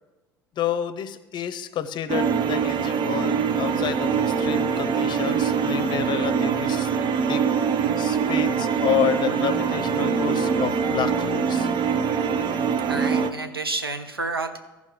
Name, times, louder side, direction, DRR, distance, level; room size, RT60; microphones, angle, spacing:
voice 1, 0.6-6.9 7.3-7.4 8.0-11.7, left 9 dB, 40° left, 12 dB, 0.7 m, -29 dB
sound 1, 2.1-13.3, right 6 dB, 35° right, 0.7 m, -23 dB
voice 2, 12.9-14.6, right 3 dB, 85° right, 7 dB, 0.7 m, -29 dB
16.0 x 5.4 x 3.2 m, 1.1 s
figure-of-eight pair, 65°, 12 cm